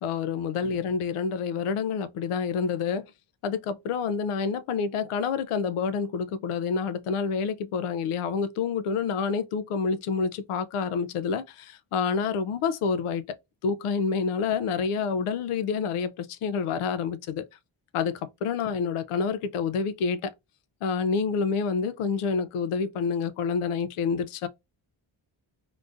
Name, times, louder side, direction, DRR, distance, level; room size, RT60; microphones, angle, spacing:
voice 1, 0.0-3.0 3.4-13.2 13.6-17.5 17.9-20.3 20.8-24.5, left 5 dB, 90° left, 0.6 m, -28 dB
3.8 x 2.5 x 2.4 m
cardioid pair, 105°, 50 cm